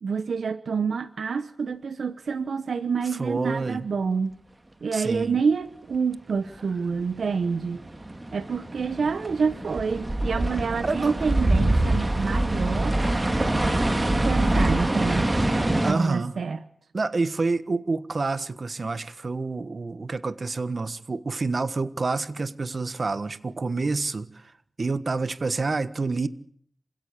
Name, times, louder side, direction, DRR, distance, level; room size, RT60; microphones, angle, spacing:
voice 1, 0.0-4.3 4.8-7.8 8.3-13.0 13.4-13.5 14.2-15.4 15.9-16.6, right 5 dB, 80° right, 0.9 m, -27 dB
voice 2, 3.2-3.9 4.9-5.4 10.8-11.1 15.8-16.3 16.9-24.5 24.8-26.3, right 3 dB, 50° right, 1.4 m, -28 dB
sound 1, 6.8-15.9, right 1 dB, 25° right, 2.4 m, -25 dB
27.0 x 17.0 x 8.3 m
cardioid pair, 60°, 0 cm